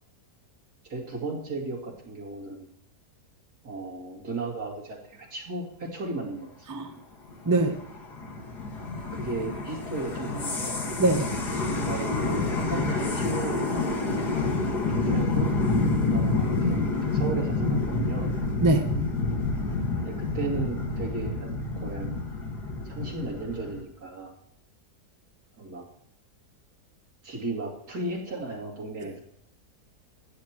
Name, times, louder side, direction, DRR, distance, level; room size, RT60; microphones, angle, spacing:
voice 1, 0.8-2.7 3.6-6.7 9.1-10.8 11.8-14.3 14.7-15.5 16.0-18.3 20.0-22.2 22.8-24.3 25.6-25.8 27.2-29.2, right 3 dB, 75° right, -3 dB, 3.0 m, -35 dB
sound 1, 7.3-23.8, left 3 dB, 85° left, 2.4 m, -28 dB
voice 2, 7.5-7.8 11.0-11.4 18.6-18.9 29.0-29.1, right 2 dB, 25° right, 6 dB, 0.4 m, -23 dB
15.0 x 9.7 x 3.0 m, 0.74 s
omnidirectional pair, 1.7 m